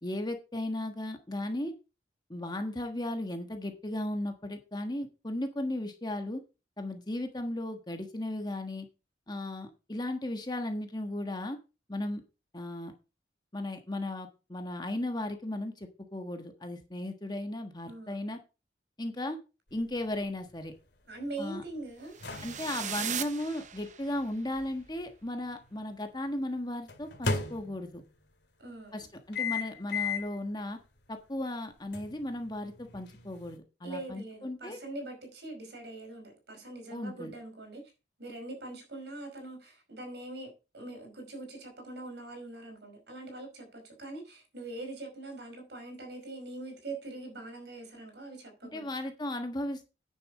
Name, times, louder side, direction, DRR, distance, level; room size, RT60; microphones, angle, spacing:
voice 1, 0.0-1.7 2.3-6.4 6.8-8.9 9.3-11.6 11.9-12.2 12.5-12.9 13.5-18.4 19.0-19.4 19.7-20.7 21.4-21.6 22.4-28.0 28.9-30.8 31.1-34.8 36.9-37.3 48.7-49.9, left 1 dB, 25° left, 1.4 m, -36 dB
voice 2, 17.8-18.3 21.1-22.5 28.6-29.1 33.8-37.8 38.2-48.8, right 2 dB, 65° right, 5.1 m, -43 dB
sound 1, 19.7-25.8 26.9-28.2 29.3-30.4 30.9-31.0 31.9-33.6, left 4 dB, 70° left, 2.3 m, -38 dB
sound 2, 22.1-24.3, right 9 dB, 45° right, 0.8 m, -38 dB
10.0 x 7.0 x 4.9 m
head